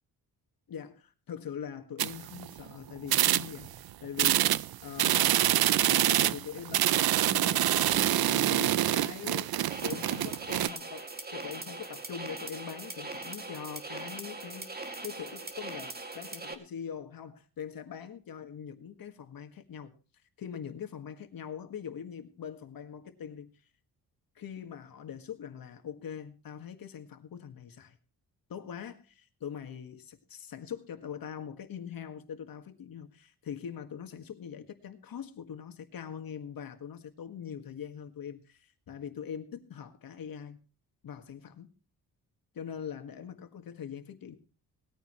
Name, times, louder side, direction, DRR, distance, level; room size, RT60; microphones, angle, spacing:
voice 1, 0.7-4.5 4.8-6.9 7.2-9.5 9.8-19.9 20.4-23.5 24.3-28.0 28.5-40.6 41.0-41.7 42.5-44.4, left 8 dB, 65° left, 7 dB, 1.8 m, -42 dB
sound 1, 2.0-2.7 3.0-3.8 4.2-10.7, right 13 dB, 70° right, 0.6 m, -26 dB
sound 2, 9.7-16.5, right 3 dB, 25° right, 2.4 m, -41 dB
20.0 x 14.5 x 3.1 m, 0.35 s
wide cardioid pair, 140°, 38 cm